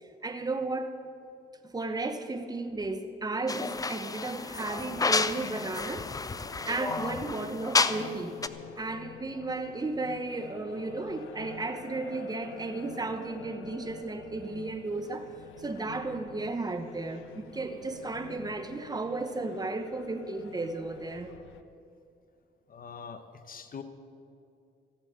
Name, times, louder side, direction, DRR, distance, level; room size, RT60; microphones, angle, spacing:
voice 1, 0.2-1.0 1.7-6.1 6.4-8.4 8.8-15.3 15.6-21.3, right 3 dB, 20° right, 8 dB, 1.1 m, -34 dB
sound 1, 3.5-8.2 8.4-8.5, left 3 dB, 20° left, 0.5 m, -30 dB
sound 2, 4.9-21.6, left 8 dB, 85° left, 0.7 m, -48 dB
voice 2, 22.7-23.8, left 6 dB, 45° left, 9 dB, 1.1 m, -43 dB
15.5 x 7.9 x 7.7 m, 2.5 s
cardioid pair, 90°, 20 cm